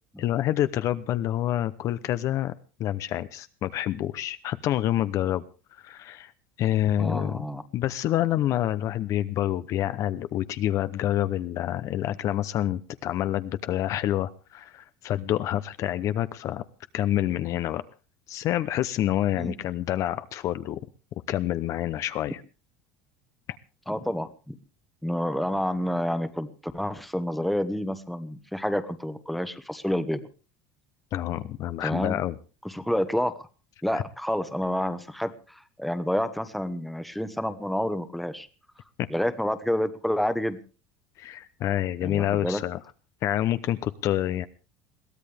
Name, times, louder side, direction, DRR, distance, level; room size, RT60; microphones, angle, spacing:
voice 1, 0.2-2.5 2.8-5.4 5.7-6.3 6.6-7.4 7.7-16.6 16.9-17.8 18.3-20.8 21.1-22.4 31.1-32.3 33.9-34.0 41.2-42.8 43.2-44.5, left 12 dB, 45° left, 13 dB, 0.8 m, -27 dB
voice 2, 7.0-7.6 19.3-19.5 23.9-24.6 25.0-30.3 31.8-32.2 32.6-33.5 33.8-38.5 39.1-40.6 42.0-42.6, equal, ahead, 11 dB, 1.2 m, -29 dB
22.0 x 15.0 x 3.5 m, 0.35 s
cardioid pair, 135°, 7 cm